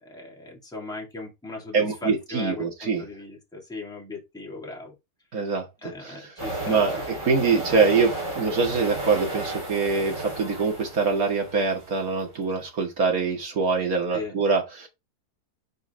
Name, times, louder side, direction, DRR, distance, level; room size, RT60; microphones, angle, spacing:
voice 1, 0.0-4.9 5.8-6.9 14.1-14.3, left 2 dB, ahead, 2.6 m, -38 dB
voice 2, 1.7-3.0 5.3-6.3 6.7-7.0 7.2-14.9, right 4 dB, 60° right, 2.5 m, -24 dB
sound 1, 6.4-12.2, right 2 dB, 15° right, 2.8 m, -33 dB
5.2 x 4.7 x 4.5 m
omnidirectional pair, 1.7 m